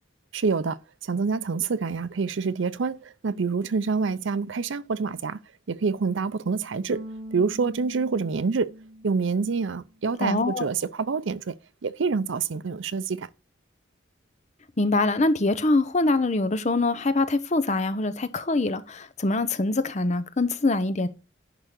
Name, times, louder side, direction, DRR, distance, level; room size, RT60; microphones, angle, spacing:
voice 1, 0.3-5.4 5.7-7.0 7.3-8.7 9.0-11.5 11.8-13.3, right 4 dB, 80° right, 0.5 m, -27 dB
Bass guitar, 6.9-10.0, equal, 25° right, 1.7 m, -42 dB
voice 2, 10.2-10.7 14.8-21.1, left 2 dB, 35° left, 0.7 m, -24 dB
11.0 x 3.7 x 6.5 m
head